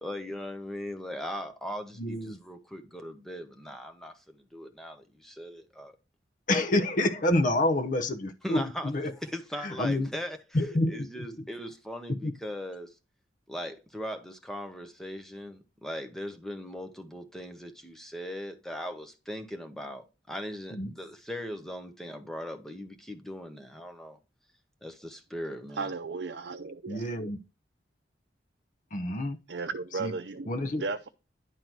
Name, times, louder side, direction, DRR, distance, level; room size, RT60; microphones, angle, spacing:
voice 1, 0.0-5.9 8.4-8.9 9.2-10.4 10.9-12.9 13.5-24.2 24.8-25.9, equal, 5° left, 1.0 m, -39 dB
voice 2, 2.0-2.4 6.5-9.1 9.6-10.1 10.5-11.5 12.1-12.3 20.7-20.9 26.9-27.4 28.9-29.4 29.9-30.1 30.5-30.8, left 1 dB, 50° left, 0.9 m, -28 dB
voice 3, 25.8-27.0 29.5-30.5 30.8-31.1, right 4 dB, 75° right, 0.6 m, -35 dB
10.5 x 3.9 x 4.6 m
head